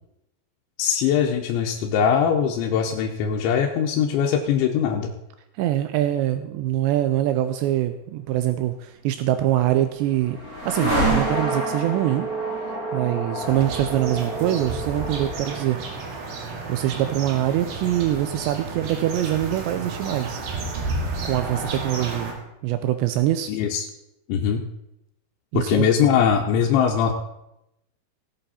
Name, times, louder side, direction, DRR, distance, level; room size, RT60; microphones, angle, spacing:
voice 1, 0.8-5.1 23.5-23.9 24.3-24.7 25.5-27.1, left 8 dB, 85° left, 0 dB, 3.2 m, -21 dB
voice 2, 5.6-10.4 10.6-12.3 12.9-15.8 16.7-20.4 21.2-22.3 22.6-23.5 25.5-25.9, right 13 dB, 80° right, 10 dB, 2.7 m, -24 dB
sound 1, 9.4-19.4, right 2 dB, 20° right, 3.2 m, -29 dB
sound 2, 13.4-22.3, right 3 dB, 60° right, 3.5 m, -32 dB
17.5 x 7.9 x 4.2 m, 0.87 s
omnidirectional pair, 5.1 m